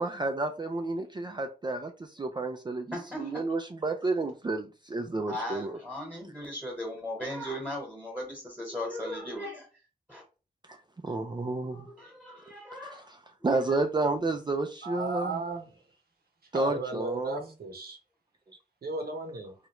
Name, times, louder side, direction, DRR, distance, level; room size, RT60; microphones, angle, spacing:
voice 1, 0.0-5.8 11.0-11.9 12.8-13.2 13.4-15.4 16.5-17.4, right 2 dB, 30° right, 0.4 m, -31 dB
voice 2, 2.9-3.4 5.3-9.7 10.1-10.2 11.6-13.1 13.7-13.8, left 1 dB, 10° right, 1.2 m, -37 dB
voice 3, 14.8-15.8 16.5-18.0 18.8-19.5, right 3 dB, 75° right, 0.8 m, -35 dB
3.1 x 2.4 x 2.9 m
wide cardioid pair, 70°, 16 cm